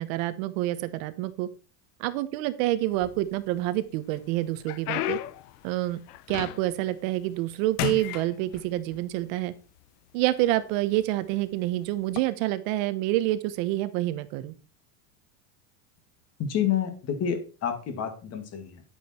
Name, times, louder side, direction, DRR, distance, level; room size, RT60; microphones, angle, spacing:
voice 1, 0.0-1.5 2.0-5.2 5.6-6.0 6.3-9.5 10.1-14.5, right 16 dB, 60° right, 13 dB, 1.1 m, -27 dB
sound 1, 2.9-3.7 4.1-6.9 7.2-7.5 7.8-9.0 9.8-9.9 10.6-10.8 12.0-12.2, left 15 dB, 90° left, 1.0 m, -34 dB
voice 2, 16.4-18.8, left 8 dB, 35° left, 7 dB, 2.1 m, -29 dB
10.5 x 8.6 x 4.4 m, 0.35 s
cardioid pair, 160°, 45 cm